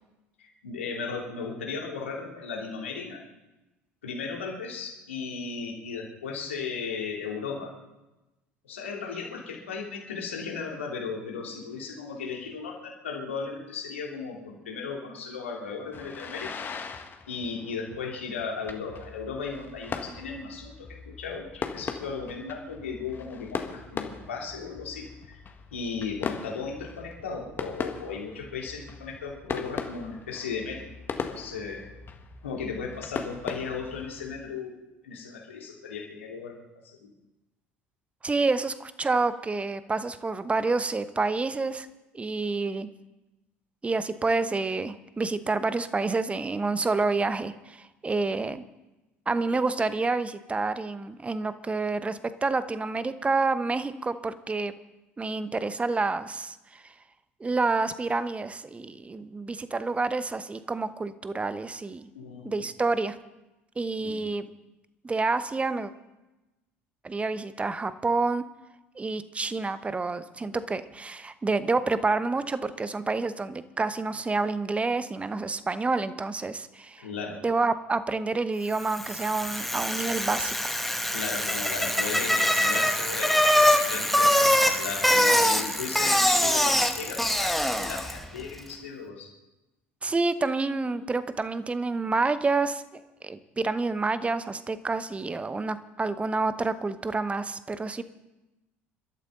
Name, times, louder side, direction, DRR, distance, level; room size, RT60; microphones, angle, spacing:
voice 1, 0.4-3.2 4.0-7.7 8.6-16.9 17.3-25.4 25.7-30.9 31.3-31.9 32.4-37.1 62.1-62.6 64.0-64.1 77.0-77.4 81.1-83.4 83.8-89.3, left 5 dB, 75° left, -1 dB, 3.1 m, -36 dB
sound 1, 15.9-34.3, left 5 dB, 30° left, 1.8 m, -39 dB
voice 2, 38.2-41.9 42.1-42.9 43.8-48.6 49.3-54.7 55.2-56.9 57.4-62.1 62.4-63.2 63.8-64.5 65.0-65.9 67.0-68.4 68.9-77.1 77.4-80.8 90.0-98.0, right 3 dB, 20° right, 13 dB, 1.0 m, -28 dB
Bicycle, 78.8-88.2, left 1 dB, ahead, 1.8 m, -24 dB
28.0 x 13.0 x 4.0 m, 1.0 s
figure-of-eight pair, 60°, 7 cm